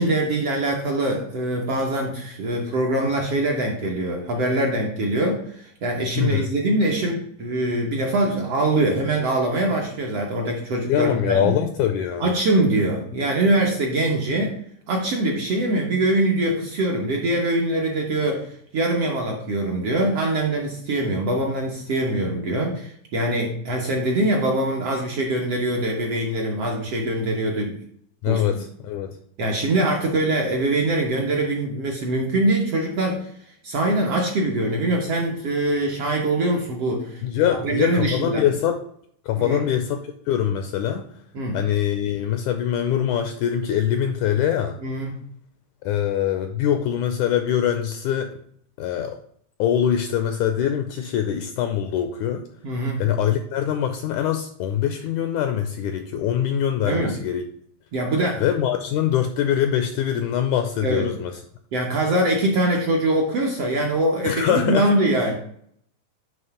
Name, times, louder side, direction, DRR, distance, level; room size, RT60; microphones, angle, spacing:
voice 1, 0.0-11.5 12.2-14.6 14.9-27.8 28.2-28.6 29.4-37.2 37.6-38.4 39.4-39.6 41.3-41.6 44.8-45.2 48.9-49.0 52.6-53.0 56.8-57.2 57.9-58.4 60.8-61.1 61.7-65.4, right 1 dB, 65° right, -1 dB, 1.6 m, -23 dB
voice 2, 6.2-6.5 10.9-12.3 28.2-29.2 37.2-38.8 39.3-41.0 41.5-44.8 45.8-48.3 48.8-49.2 49.6-52.5 53.0-57.4 58.4-61.3 64.2-64.9, left 9 dB, 85° left, 7 dB, 1.8 m, -23 dB
9.2 x 3.2 x 5.7 m, 0.66 s
omnidirectional pair, 4.0 m